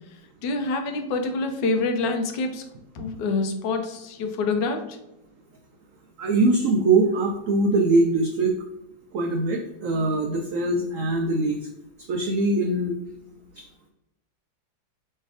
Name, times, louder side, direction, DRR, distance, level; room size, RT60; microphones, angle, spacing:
voice 1, 0.4-2.6 2.9-5.0, left 3 dB, 85° left, 6 dB, 1.4 m, -26 dB
voice 2, 6.2-8.5 9.1-11.6 12.1-13.0 13.6-13.7, right 2 dB, 85° right, 3 dB, 0.7 m, -22 dB
3.3 x 3.3 x 4.7 m, 0.89 s
omnidirectional pair, 1.9 m